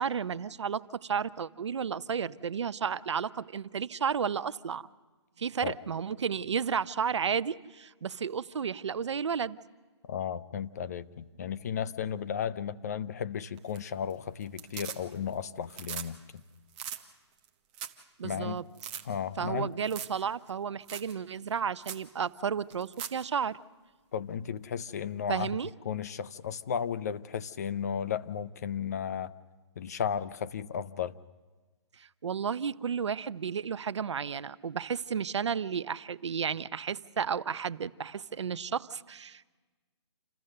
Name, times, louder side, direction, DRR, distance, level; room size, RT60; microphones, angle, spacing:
voice 1, 0.0-4.9 5.4-9.6 18.2-18.6 19.4-23.6 25.3-25.7 32.0-39.6, right 7 dB, 75° right, 15 dB, 0.7 m, -32 dB
voice 2, 10.0-16.2 18.2-18.6 19.1-19.7 24.1-25.5 25.8-29.3 29.8-31.2, left 8 dB, 35° left, 14 dB, 0.5 m, -34 dB
sound 1, 13.6-14.1 14.4-15.3 15.6-16.1 16.4-16.5 16.7-17.0 17.4-17.5 17.7-18.0 18.3-18.4 18.7-19.0 19.8-20.2 20.5-20.6 20.9-21.1 21.5-21.6 21.8-22.0 22.7-23.2 25.4-25.5, right 9 dB, 15° right, 0.8 m, -40 dB
28.0 x 14.5 x 6.7 m, 1.3 s
hypercardioid pair, 170°, 15 cm